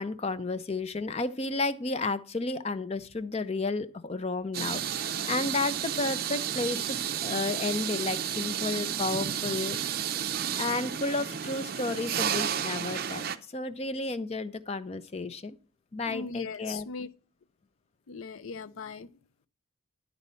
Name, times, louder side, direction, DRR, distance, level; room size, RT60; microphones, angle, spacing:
voice 1, 0.0-7.0 7.2-10.1 10.6-13.2 13.5-15.6 15.9-16.9, left 3 dB, 30° left, 0.5 m, -32 dB
sound 1, 4.5-13.4, right 8 dB, 45° right, 0.5 m, -32 dB
voice 2, 16.1-17.1 18.1-19.1, left 4 dB, 85° left, 0.5 m, -39 dB
11.0 x 4.1 x 5.5 m
head